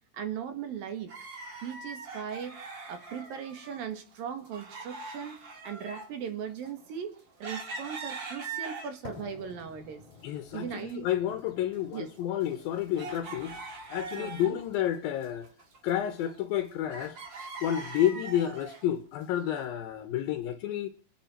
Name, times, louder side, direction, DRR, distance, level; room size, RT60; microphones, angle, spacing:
voice 1, 0.1-1.2 1.6-2.6 2.9-5.4 5.6-10.0 10.5-11.1 11.9-12.1 14.2-14.6, right 8 dB, 65° right, 3.4 m, -38 dB
sound 1, 1.1-3.9 4.1-9.2 9.7-10.6 10.8-10.9 11.5-14.7 15.1-16.6 16.9-18.9 19.5-19.6, right 4 dB, 40° right, 1.9 m, -42 dB
sound 2, 9.0-17.1, left 6 dB, 45° left, 3.0 m, -53 dB
voice 2, 10.2-13.6 13.9-15.5 15.8-17.2 17.6-20.9, left 11 dB, 75° left, 2.6 m, -30 dB
28.5 x 9.9 x 4.5 m
omnidirectional pair, 4.6 m